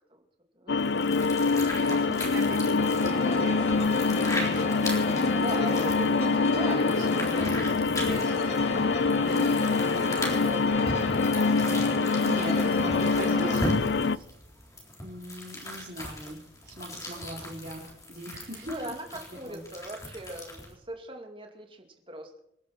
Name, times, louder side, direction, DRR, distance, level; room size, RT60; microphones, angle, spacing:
voice 1, 0.5-1.1 5.4-8.8 12.5-13.6 13.9-14.3 17.0-17.2 18.6-22.4, right 1 dB, 30° right, 4 dB, 2.5 m, -41 dB
sound 1, 0.7-14.2, left 4 dB, 60° left, 0.5 m, -25 dB
sound 2, 0.8-20.7, left 1 dB, 15° left, 3.9 m, -39 dB
voice 2, 1.5-6.0 6.7-7.5 8.0-8.5 9.2-9.5 11.9-13.7 15.0-18.9 19.3-19.6, right 1 dB, 45° right, -5 dB, 3.3 m, -41 dB
sound 3, 2.8-13.6, left 1 dB, 35° left, 2.1 m, -35 dB
27.5 x 11.0 x 4.4 m, 0.80 s
head